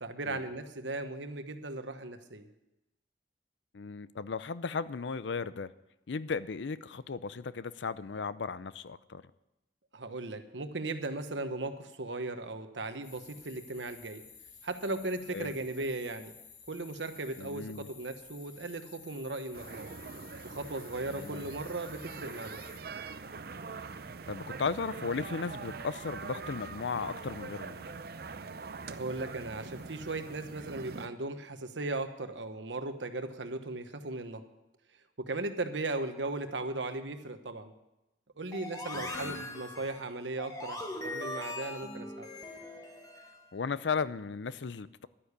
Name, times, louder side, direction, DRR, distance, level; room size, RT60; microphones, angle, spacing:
voice 1, 0.0-2.5 9.9-14.2 14.6-16.4 16.7-19.9 20.4-22.6 28.9-34.4 35.2-37.7 38.4-42.3, right 2 dB, 85° right, 8 dB, 1.2 m, -37 dB
voice 2, 3.7-5.7 6.1-9.2 15.3-15.6 17.4-17.9 21.1-21.5 24.3-27.9 38.9-39.4 43.5-45.1, left 5 dB, 80° left, 16 dB, 0.5 m, -36 dB
sound 1, 13.0-22.8, left 6 dB, 45° left, 1.8 m, -54 dB
sound 2, 19.5-31.1, right 4 dB, 55° right, 0.6 m, -43 dB
sound 3, 38.5-43.4, left 2 dB, 20° left, 1.5 m, -41 dB
12.0 x 9.7 x 6.8 m, 0.94 s
head